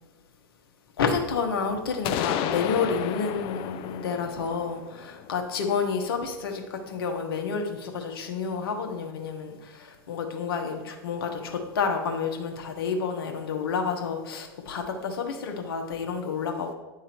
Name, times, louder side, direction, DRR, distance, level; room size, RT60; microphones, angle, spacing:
voice 1, 1.0-16.7, left 5 dB, 75° left, 1.2 m, -29 dB
sound 1, 2.0-5.8, left 10 dB, 45° left, 0.5 m, -32 dB
10.5 x 3.7 x 4.5 m
hypercardioid pair, 105°, 13 cm